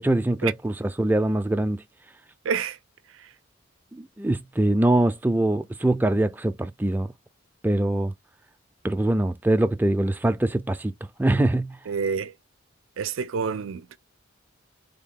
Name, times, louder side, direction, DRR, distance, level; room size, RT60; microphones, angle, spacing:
voice 1, 0.0-1.8 3.9-7.1 7.6-8.1 8.8-10.9 11.2-11.8, right 1 dB, 10° right, 0.3 m, -23 dB
voice 2, 2.4-2.8 11.9-12.3 13.0-14.0, right 6 dB, 90° right, 0.4 m, -28 dB
3.5 x 2.2 x 3.6 m
head